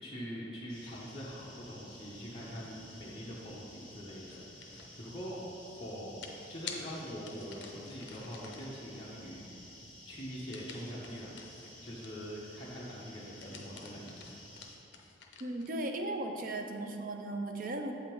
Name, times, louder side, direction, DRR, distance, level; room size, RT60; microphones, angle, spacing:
voice 1, 0.0-5.4 5.7-9.8 10.0-11.4 11.8-14.2, equal, 30° left, -8 dB, 0.7 m, -44 dB
sound 1, 0.7-14.7, left 1 dB, 5° left, 1.1 m, -53 dB
sound 2, 4.3-4.9 6.2-8.8 10.5-12.3 13.2-15.8, left 5 dB, 65° left, 0.6 m, -49 dB
voice 2, 15.4-17.9, right 2 dB, 45° right, 4 dB, 0.4 m, -36 dB
7.7 x 3.6 x 4.5 m, 2.9 s
head